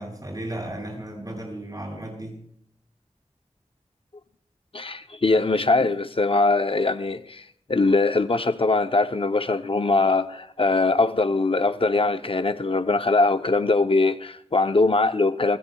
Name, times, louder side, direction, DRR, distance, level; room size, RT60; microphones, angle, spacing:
voice 1, 0.0-2.4, right 1 dB, 30° right, 7.7 m, -34 dB
voice 2, 4.7-15.6, left 3 dB, 50° left, 0.6 m, -22 dB
28.0 x 16.0 x 2.3 m
wide cardioid pair, 65°, 12 cm